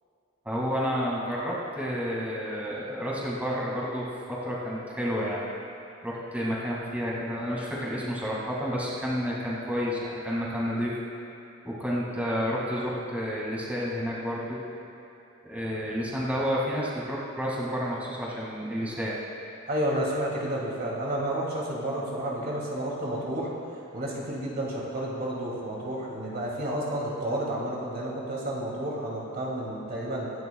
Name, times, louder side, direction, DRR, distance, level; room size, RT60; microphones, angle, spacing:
voice 1, 0.4-5.4 6.0-10.9 11.6-14.6 15.4-19.2, equal, 10° right, -6 dB, 2.1 m, -30 dB
voice 2, 19.7-23.5 23.9-30.3, right 1 dB, 50° right, -4 dB, 2.5 m, -31 dB
24.0 x 11.0 x 2.3 m, 2.8 s
head